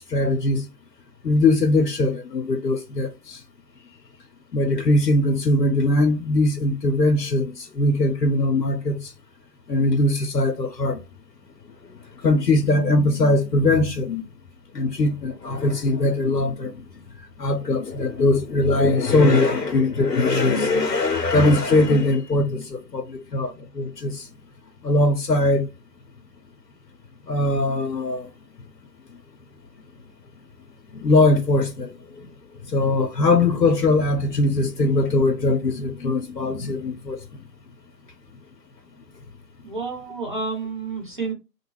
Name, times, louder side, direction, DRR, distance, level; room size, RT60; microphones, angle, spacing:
voice 1, 0.1-0.7 1.2-3.4 4.5-9.1 9.7-11.0 12.2-14.3 14.7-16.7 17.4-24.3 24.8-25.7 27.3-28.3 30.9-32.3 32.7-37.2, left 2 dB, 85° left, 0.7 m, -21 dB
voice 2, 39.6-41.3, right 4 dB, 30° right, 0.9 m, -30 dB
2.8 x 2.2 x 3.0 m
figure-of-eight pair, 155°, 49 cm